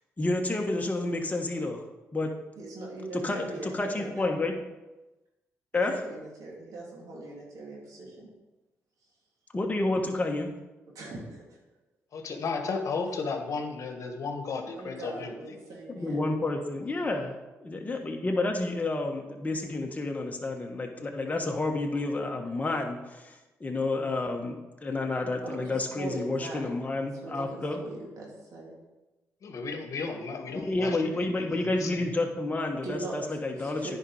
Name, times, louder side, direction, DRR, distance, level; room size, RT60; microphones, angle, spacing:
voice 1, 0.2-1.8 2.1-2.3 3.1-4.5 5.7-6.0 9.5-10.5 15.9-17.3 17.6-23.3 23.6-27.8 30.5-34.0, left 2 dB, 25° left, 2 dB, 1.6 m, -30 dB
voice 2, 2.6-4.3 5.7-8.3 10.9-11.2 11.5-11.6 14.8-16.2 25.4-26.8 27.2-28.8 32.8-33.2 33.5-34.0, right 2 dB, 75° right, -4 dB, 2.8 m, -41 dB
voice 3, 12.1-15.4 29.4-32.1, left 4 dB, 65° left, 5 dB, 1.4 m, -34 dB
9.8 x 5.4 x 4.9 m, 1.1 s
cardioid pair, 70°, 6 cm